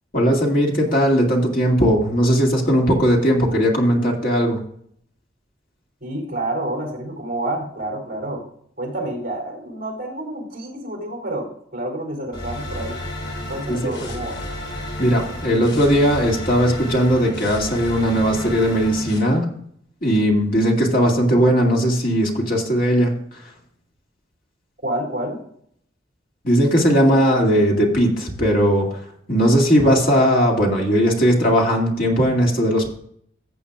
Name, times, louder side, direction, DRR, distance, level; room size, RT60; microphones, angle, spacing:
voice 1, 0.1-4.6 13.7-13.8 15.0-19.5 20.0-23.1 26.4-28.9 29.3-32.9, equal, 45° left, 0 dB, 2.3 m, -18 dB
voice 2, 6.0-8.4 8.8-13.0 13.5-14.4 24.8-25.4, right 1 dB, 50° right, -1 dB, 3.7 m, -28 dB
sound 1, 12.3-19.2, left 1 dB, 75° left, 4.7 m, -32 dB
14.5 x 8.4 x 2.4 m, 0.65 s
head